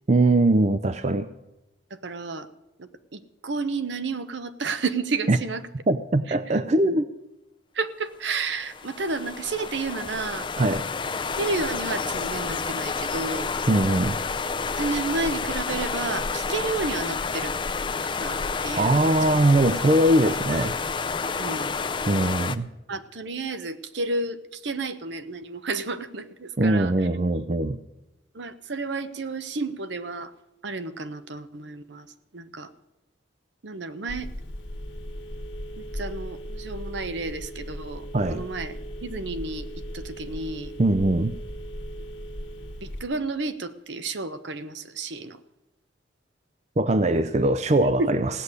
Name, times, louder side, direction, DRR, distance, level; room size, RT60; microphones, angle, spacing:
voice 1, 0.1-1.3 5.3-5.4 5.9-7.1 10.6-10.8 13.7-14.2 18.8-20.7 22.1-22.7 26.6-27.8 38.1-38.4 40.8-41.3 46.8-48.3, right 1 dB, 35° right, 12 dB, 0.5 m, -21 dB
voice 2, 1.9-2.5 2.8-5.7 6.3-6.6 7.7-10.5 11.4-13.5 14.8-17.5 18.2-18.4 18.6-19.1 21.4-21.7 22.9-26.9 28.3-30.3 30.6-32.1 32.3-32.7 33.6-34.3 35.9-39.6 39.9-40.7 42.8-45.4 47.8-48.2, right 3 dB, 65° right, 12 dB, 0.8 m, -31 dB
sound 1, 8.3-22.6, left 4 dB, 25° left, 0.4 m, -30 dB
Telephone, 34.1-43.1, equal, 60° left, 1.4 m, -37 dB
16.5 x 6.6 x 9.7 m, 0.94 s
head